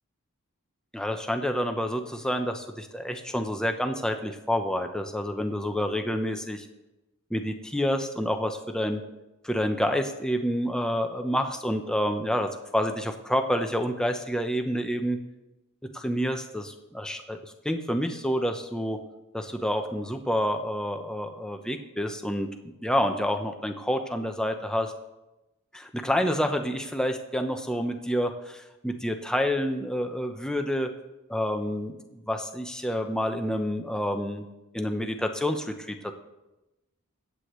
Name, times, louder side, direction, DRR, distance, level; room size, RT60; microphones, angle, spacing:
voice 1, 0.9-6.7 7.3-9.0 9.4-15.2 15.9-19.0 19.3-22.5 22.8-24.9 25.7-30.9 31.3-34.4 34.7-36.1, equal, 5° left, 5 dB, 0.8 m, -28 dB
23.0 x 8.3 x 3.1 m, 1.0 s
head